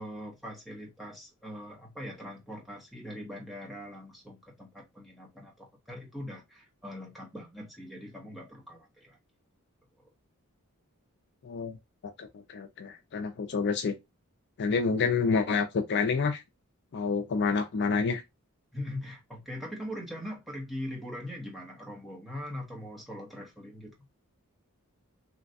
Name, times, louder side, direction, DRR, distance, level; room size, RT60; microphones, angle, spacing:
voice 1, 0.0-9.2 18.7-23.9, left 1 dB, ahead, 0.8 m, -41 dB
voice 2, 11.4-11.8 12.0-14.0 14.6-16.4 16.9-18.2, left 5 dB, 50° left, 0.4 m, -28 dB
3.2 x 2.5 x 2.5 m
head